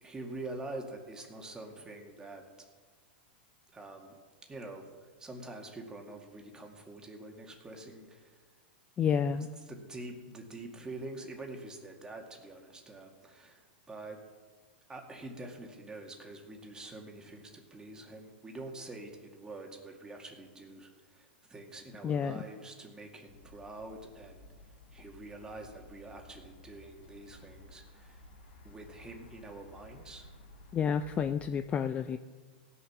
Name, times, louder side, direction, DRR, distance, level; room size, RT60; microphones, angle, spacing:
voice 1, 0.0-2.4 3.7-4.2 4.5-8.4 9.4-14.2 14.9-24.5 24.9-28.2 28.6-30.3, right 2 dB, 10° right, 2 dB, 2.0 m, -46 dB
voice 2, 9.0-9.5 22.0-22.4 30.7-32.2, left 7 dB, 20° left, 10 dB, 0.4 m, -30 dB
sound 1, 23.3-31.5, left 1 dB, 80° left, 2.2 m, -55 dB
18.0 x 6.9 x 6.0 m, 1.4 s
hypercardioid pair, 135°, 6 cm